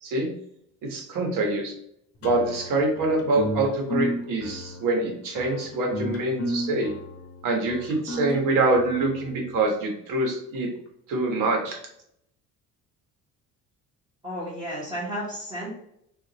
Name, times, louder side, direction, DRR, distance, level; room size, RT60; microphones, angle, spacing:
voice 1, 0.0-0.3 0.8-1.7 2.2-6.9 7.4-10.7 11.1-11.8, right 2 dB, 75° right, 1 dB, 1.4 m, -25 dB
sound 1, 2.2-9.6, equal, 45° left, 0.9 m, -33 dB
voice 2, 14.2-15.7, equal, 15° right, -7 dB, 1.3 m, -32 dB
6.1 x 2.6 x 3.0 m, 0.74 s
cardioid pair, 125°, 33 cm